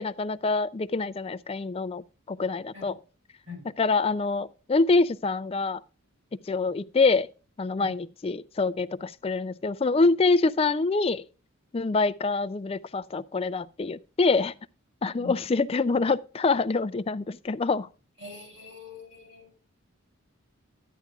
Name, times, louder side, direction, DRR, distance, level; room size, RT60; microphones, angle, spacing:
voice 1, 0.0-3.0 3.8-5.8 6.5-7.3 7.6-11.2 11.7-14.5 15.0-17.9, left 3 dB, 25° left, 0.3 m, -25 dB
voice 2, 18.2-19.5, left 4 dB, 55° right, 6.3 m, -42 dB
12.5 x 10.0 x 2.3 m
head